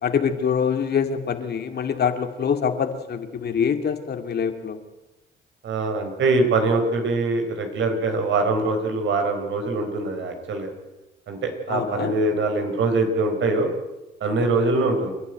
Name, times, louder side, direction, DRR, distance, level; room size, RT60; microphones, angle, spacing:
voice 1, 0.0-4.8 11.7-12.1, left 7 dB, 55° left, 7 dB, 2.4 m, -25 dB
voice 2, 5.6-10.7 11.3-13.7 14.2-15.1, right 3 dB, 70° right, 6 dB, 4.5 m, -23 dB
28.5 x 11.0 x 9.2 m, 1.1 s
cardioid pair, 90°, 20 cm